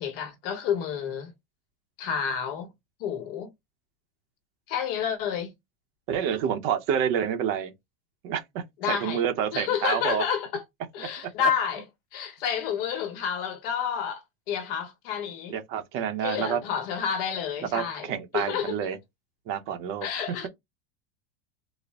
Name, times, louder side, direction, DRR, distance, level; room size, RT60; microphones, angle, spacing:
voice 1, 0.0-1.3 2.0-2.7 3.0-3.5 4.7-5.5 8.8-9.2 9.5-10.6 10.9-11.8 12.1-15.6 16.2-18.1 18.3-18.8 20.0-20.5, left 8 dB, 65° left, 1.2 m, -29 dB
voice 2, 6.1-7.7 8.2-10.2 11.4-11.5 15.5-16.6 17.7-19.0 19.5-20.5, right 8 dB, 40° right, 0.8 m, -28 dB
4.1 x 2.2 x 3.5 m
supercardioid pair, 160°, 31 cm